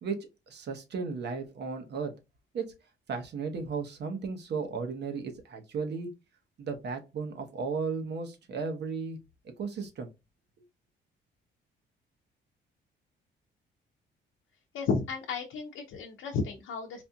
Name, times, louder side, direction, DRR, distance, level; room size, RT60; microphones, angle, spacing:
voice 1, 0.0-2.1 2.5-2.7 3.1-6.1 6.6-9.2 9.6-10.1, right 5 dB, 60° right, 1.0 m, -35 dB
voice 2, 14.7-17.0, left 4 dB, 80° left, 0.7 m, -32 dB
4.2 x 2.6 x 2.3 m
cardioid pair, 90°, 20 cm